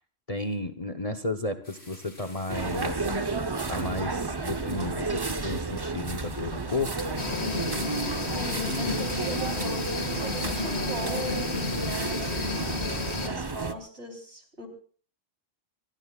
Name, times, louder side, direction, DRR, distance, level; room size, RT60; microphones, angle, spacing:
voice 1, 0.3-3.1 3.7-6.9, left 2 dB, 30° left, 8 dB, 0.9 m, -33 dB
sound 1, 1.6-4.1 6.9-12.5, left 1 dB, 75° left, 5.7 m, -49 dB
sound 2, 2.5-13.7, right 3 dB, 20° right, 0.8 m, -32 dB
sound 3, 7.2-13.3, left 3 dB, 60° left, 2.3 m, -32 dB
voice 2, 8.3-12.7 13.2-14.7, right 1 dB, 55° right, 2 dB, 4.1 m, -39 dB
25.5 x 21.0 x 2.4 m, 0.42 s
omnidirectional pair, 1.3 m